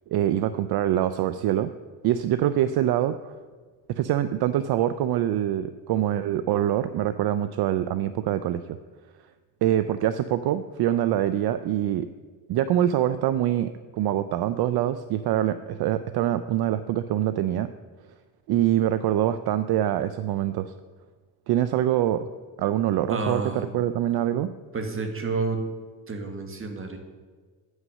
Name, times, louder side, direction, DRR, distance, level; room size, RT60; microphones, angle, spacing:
voice 1, 0.1-1.7 2.0-3.3 3.9-8.6 9.6-12.1 12.5-17.7 18.5-20.7 21.5-22.3 22.6-24.5, right 11 dB, 60° right, 13 dB, 0.5 m, -24 dB
voice 2, 23.1-23.7 24.7-25.6 26.1-27.0, right 3 dB, 30° right, 5 dB, 1.6 m, -29 dB
9.0 x 6.4 x 6.3 m, 1.5 s
cardioid pair, 90°, 44 cm